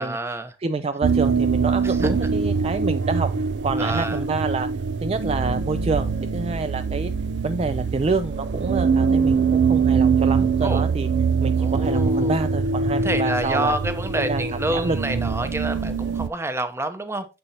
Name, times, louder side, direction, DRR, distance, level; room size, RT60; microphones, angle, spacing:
voice 1, 0.0-0.6 1.8-2.1 3.8-4.2 10.6-10.8 11.6-12.4 13.0-17.3, right 1 dB, 15° right, 0.7 m, -28 dB
voice 2, 0.6-3.3 3.6-4.7 5.0-7.1 7.4-11.1 11.4-13.8 14.1-15.0, right 4 dB, 35° right, 0.4 m, -27 dB
sound 1, 1.0-16.3, right 5 dB, 90° right, 0.5 m, -23 dB
6.9 x 6.7 x 2.8 m
head